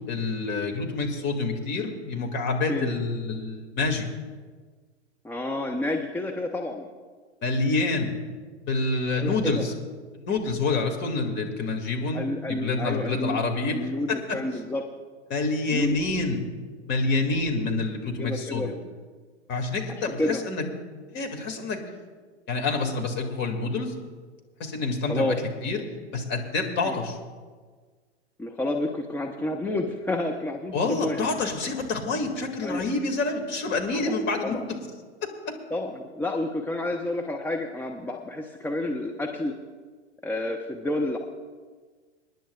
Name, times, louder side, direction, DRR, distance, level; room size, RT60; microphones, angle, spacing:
voice 1, 0.1-4.1 7.4-8.2 8.7-9.7 10.1-13.8 14.1-14.4 15.3-16.4 16.8-18.8 19.5-20.6 21.1-21.8 22.5-23.9 24.6-25.8 26.1-27.2 30.7-34.6, left 3 dB, 30° left, 3 dB, 2.0 m, -27 dB
voice 2, 5.2-6.9 9.2-9.6 12.1-13.4 13.7-14.8 15.7-16.0 18.2-18.7 20.0-20.4 25.1-25.4 26.8-27.0 28.4-31.2 32.6-32.9 33.9-34.2 34.4-34.6 35.7-39.5 40.2-41.2, left 1 dB, 5° left, 2 dB, 0.6 m, -29 dB
27.5 x 10.5 x 2.3 m, 1.5 s
figure-of-eight pair, 105°, 35 cm